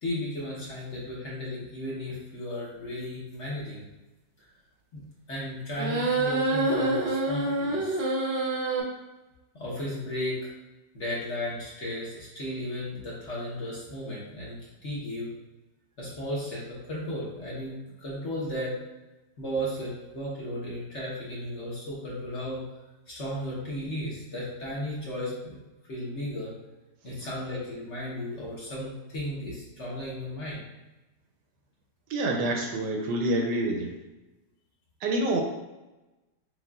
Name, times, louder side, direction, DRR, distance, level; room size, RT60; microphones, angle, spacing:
voice 1, 0.0-3.9 4.9-5.0 5.3-8.0 9.5-10.5 10.9-15.3 16.0-17.7 18.0-18.7 19.4-22.6 23.1-25.5 25.9-26.5 27.0-30.6, left 1 dB, 45° left, -6 dB, 1.1 m, -35 dB
sound 1, 5.8-8.8, right 2 dB, 60° right, 0.6 m, -26 dB
voice 2, 32.1-33.9 35.0-35.4, right 1 dB, 75° right, 2 dB, 1.2 m, -27 dB
6.5 x 2.4 x 2.3 m, 1.1 s
omnidirectional pair, 1.9 m